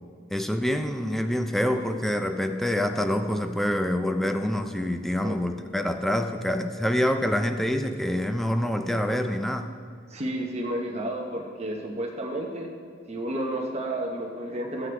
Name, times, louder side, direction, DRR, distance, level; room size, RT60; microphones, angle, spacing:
voice 1, 0.3-9.7, left 1 dB, ahead, 7 dB, 0.4 m, -26 dB
voice 2, 10.1-12.7 13.1-14.9, right 1 dB, 35° right, 0 dB, 0.8 m, -31 dB
14.0 x 7.6 x 3.3 m, 2.1 s
head